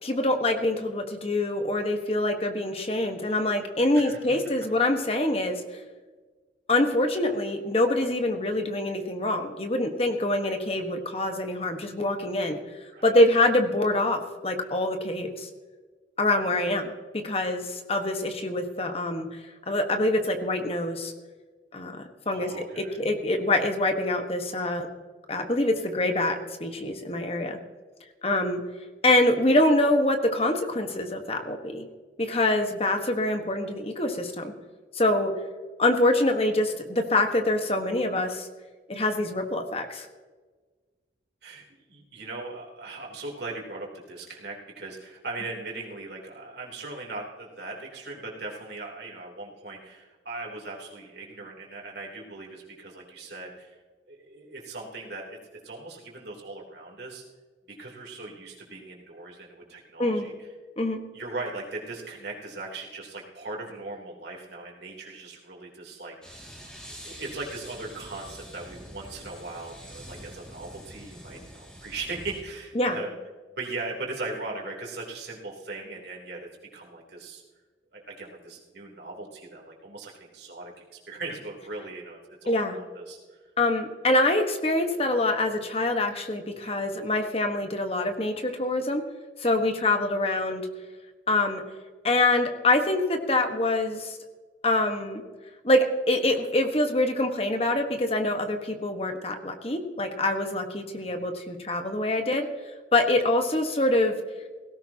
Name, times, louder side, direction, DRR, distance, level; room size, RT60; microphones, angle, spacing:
voice 1, 0.0-5.6 6.7-12.6 13.0-15.5 16.2-19.4 19.7-21.1 21.7-22.5 22.8-24.9 25.3-27.6 28.2-28.6 29.0-31.9 32.2-34.5 34.9-35.3 35.8-38.5 38.9-40.1 60.0-60.3 60.8-61.0 72.7-73.0 82.5-82.8 83.6-89.0 89.4-90.7 91.3-91.6 92.0-94.2 94.6-95.2 95.6-102.5 102.9-104.1, left 1 dB, 35° left, 5 dB, 1.4 m, -25 dB
voice 2, 22.3-23.0 41.4-53.8 54.1-57.2 57.6-60.3 61.1-66.5 67.0-73.1 73.6-77.4 77.9-83.4 86.5-86.8 101.0-101.2, right 3 dB, 65° right, -2 dB, 3.4 m, -39 dB
sound 1, 66.2-72.4, equal, 5° left, 2.3 m, -45 dB
17.5 x 16.0 x 2.9 m, 1.4 s
head